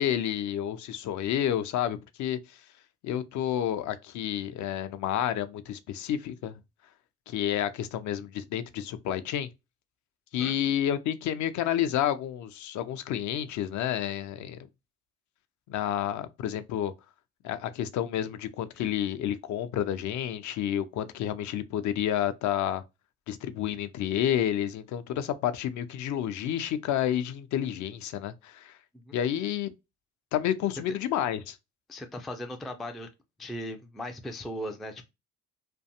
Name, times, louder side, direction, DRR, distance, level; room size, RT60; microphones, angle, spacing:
voice 1, 0.0-2.6 3.0-6.6 7.3-9.5 10.3-14.6 15.7-16.9 17.4-22.8 23.3-28.8 29.1-29.7 30.3-31.6, left 10 dB, 55° left, 0.5 m, -30 dB
voice 2, 31.9-33.1 33.4-35.0, left 1 dB, ahead, 0.3 m, -38 dB
2.5 x 2.2 x 2.7 m
hypercardioid pair, 55°, 37 cm